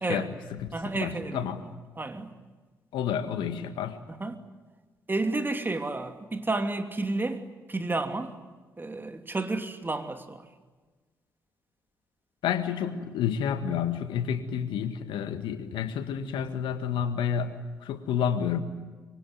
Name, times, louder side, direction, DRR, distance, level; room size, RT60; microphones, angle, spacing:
voice 1, 0.1-1.6 2.9-4.0 12.4-18.6, left 8 dB, 65° left, 1.8 m, -30 dB
voice 2, 0.7-1.5 2.0-2.3 4.1-4.3 5.1-8.3 8.8-10.4, right 2 dB, 25° right, 2.8 m, -31 dB
25.5 x 24.0 x 9.4 m
figure-of-eight pair, 40°, 9 cm